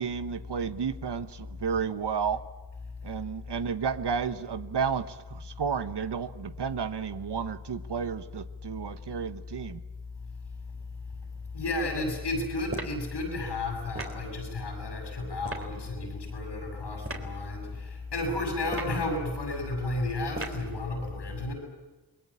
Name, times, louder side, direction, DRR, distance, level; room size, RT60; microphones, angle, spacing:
voice 1, 0.0-2.4 3.0-9.8, right 6 dB, 85° right, 11 dB, 1.2 m, -32 dB
voice 2, 11.5-21.5, left 2 dB, 85° left, 3 dB, 7.3 m, -32 dB
sound 1, 12.7-13.0 14.0-14.2 15.4-15.7 17.0-17.3 18.6-19.0 20.3-20.7, right 2 dB, 35° right, 3.8 m, -37 dB
27.5 x 21.0 x 8.7 m, 1.2 s
cardioid pair, 60°, 40 cm